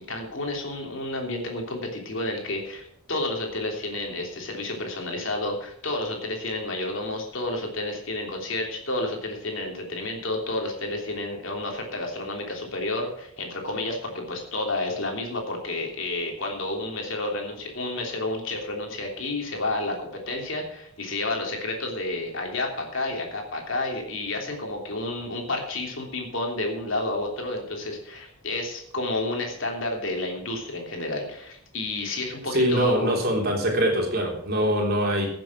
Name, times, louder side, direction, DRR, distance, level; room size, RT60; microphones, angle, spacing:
voice 1, 0.1-33.2, left 2 dB, 60° left, 1 dB, 3.2 m, -30 dB
voice 2, 32.5-35.3, equal, 45° right, 0 dB, 3.6 m, -23 dB
15.5 x 7.6 x 6.1 m, 0.72 s
head